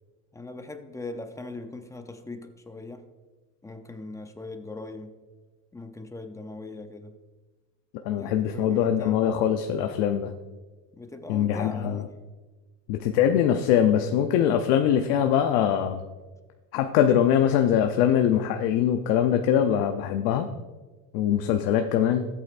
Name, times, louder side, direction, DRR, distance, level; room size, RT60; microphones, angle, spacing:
voice 1, 0.3-3.1 3.6-5.1 5.7-7.1 8.2-9.2 10.9-12.1, left 2 dB, 10° left, 7 dB, 0.6 m, -40 dB
voice 2, 8.0-10.3 11.3-12.1 12.9-16.0 16.7-20.5 21.1-22.3, left 9 dB, 65° left, 5 dB, 0.7 m, -22 dB
14.5 x 8.4 x 2.5 m, 1.3 s
cardioid pair, 135°, 40 cm